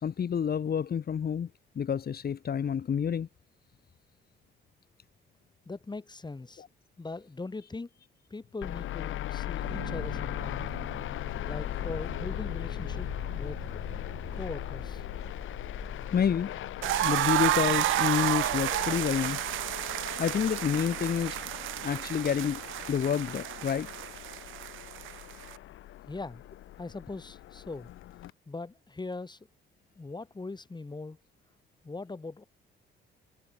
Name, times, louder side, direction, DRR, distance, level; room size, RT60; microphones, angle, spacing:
voice 1, 0.0-1.5 1.8-3.3 6.6-6.7 16.1-16.5 17.0-19.4 20.2-21.4 21.8-22.6 22.9-23.9, left 7 dB, 50° left, 3.4 m, -28 dB
voice 2, 5.7-6.6 7.0-7.9 8.3-10.6 11.4-13.1 13.4-13.6 14.3-15.0 26.1-26.4 26.8-27.9 28.5-29.4 30.0-31.2 31.8-32.4, left 3 dB, 20° left, 6.3 m, -40 dB
sound 1, 8.6-28.3, left 13 dB, 80° left, 4.1 m, -38 dB
sound 2, 9.6-23.2, right 8 dB, 60° right, 5.7 m, -48 dB
sound 3, 16.8-25.6, right 16 dB, 90° right, 1.5 m, -31 dB
cardioid pair, 90°, 20 cm